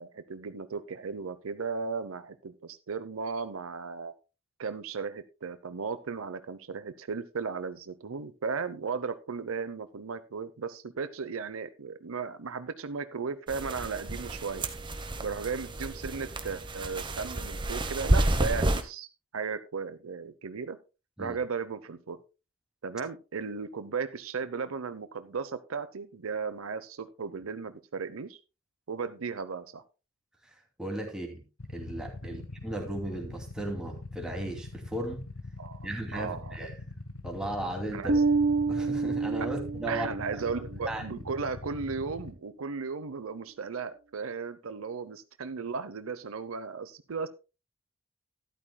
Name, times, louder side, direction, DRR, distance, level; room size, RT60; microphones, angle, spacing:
voice 1, 0.0-4.1 4.6-14.6 15.2-19.1 19.3-20.8 21.2-22.2 22.8-28.4 28.9-29.8 32.2-32.4 35.6-36.6 37.9-38.2 39.5-39.6 39.9-47.3, right 5 dB, 80° right, 12 dB, 0.7 m, -36 dB
sound 1, 13.5-18.8, right 1 dB, 25° right, 1.0 m, -30 dB
voice 2, 30.8-31.4 31.7-35.2 35.8-36.8 37.2-38.1 38.7-40.1 40.9-41.2, right 1 dB, 5° right, 0 dB, 2.6 m, -36 dB
Motorcycle / Idling, 31.6-42.3, left 2 dB, 80° left, 1.2 m, -43 dB
Bass guitar, 38.1-40.5, right 4 dB, 45° right, 0.6 m, -27 dB
12.5 x 11.5 x 2.2 m, 0.29 s
head